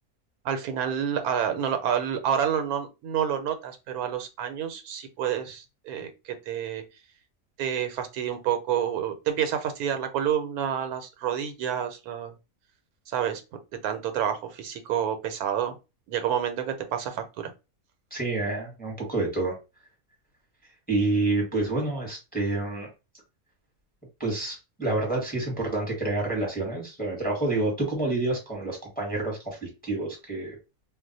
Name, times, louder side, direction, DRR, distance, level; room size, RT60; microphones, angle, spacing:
voice 1, 0.4-6.8 7.6-12.3 13.1-13.4 13.8-15.7 16.1-17.5, right 9 dB, 85° right, 1.1 m, -28 dB
voice 2, 18.1-19.6 20.9-22.9 24.2-30.6, right 2 dB, 10° left, 0.8 m, -28 dB
2.4 x 2.1 x 3.9 m
omnidirectional pair, 1.5 m